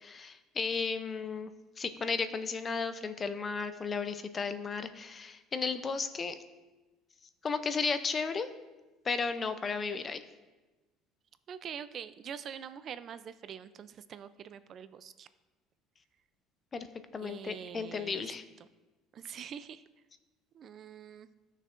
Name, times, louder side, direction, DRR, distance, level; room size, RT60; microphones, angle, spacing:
voice 1, 0.0-1.5 1.8-6.3 7.4-8.5 9.0-10.2 16.7-16.9 17.1-18.4, left 5 dB, 25° left, 10 dB, 0.5 m, -34 dB
voice 2, 11.5-15.3 17.2-18.3 18.6-18.7 19.1-19.8 20.5-21.3, right 8 dB, 40° right, 13 dB, 0.4 m, -45 dB
14.0 x 6.4 x 2.5 m, 1.2 s
cardioid pair, 135°, 0 cm